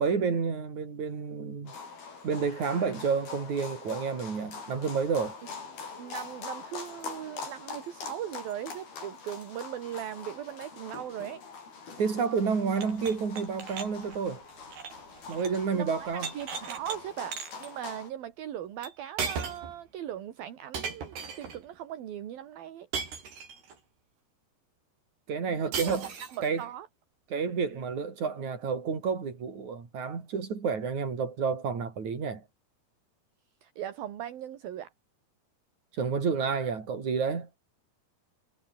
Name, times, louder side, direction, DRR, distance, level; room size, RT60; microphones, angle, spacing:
voice 1, 0.0-1.7 2.2-5.4 12.0-14.4 15.3-16.3 25.3-26.1 26.4-26.6 27.3-32.4 36.0-37.5, right 5 dB, 50° right, 5.7 m, -30 dB
sound 1, 1.7-18.1, left 5 dB, 70° left, 8.2 m, -44 dB
voice 2, 6.0-11.4 15.1-15.4 15.7-22.9 25.6-26.0 26.3-26.9 33.6-34.9, right 11 dB, 70° right, 3.8 m, -39 dB
sound 2, 12.7-15.7 15.9-17.0 17.3-17.7 18.8-18.9 19.2-19.8 20.7-21.6 22.9-23.8 25.7-26.5, right 6 dB, 85° right, 7.3 m, -37 dB
omnidirectional pair, 4.5 m